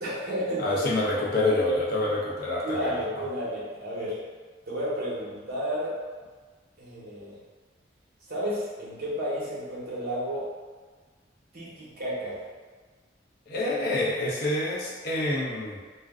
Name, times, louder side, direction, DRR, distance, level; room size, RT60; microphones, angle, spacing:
voice 1, 0.0-0.8 2.6-4.2 4.7-5.9 6.8-7.4 8.3-10.5 11.5-12.4, equal, 50° right, -8 dB, 1.0 m, -32 dB
voice 2, 0.6-2.9 13.5-15.8, left 2 dB, 50° left, -5 dB, 0.6 m, -27 dB
2.4 x 2.1 x 3.5 m, 1.4 s
head